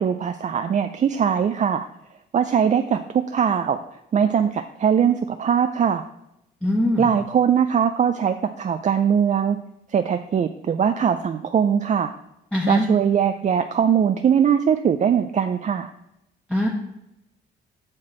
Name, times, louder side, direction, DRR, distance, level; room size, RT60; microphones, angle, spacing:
voice 1, 0.0-1.9 2.3-3.8 4.1-6.0 7.0-9.6 9.9-12.1 12.7-15.9, right 8 dB, 40° right, 8 dB, 0.4 m, -21 dB
voice 2, 6.6-7.1 12.5-12.9 16.5-16.7, left 1 dB, 5° left, -5 dB, 1.3 m, -22 dB
7.7 x 5.9 x 4.4 m, 0.85 s
cardioid pair, 90°, 20 cm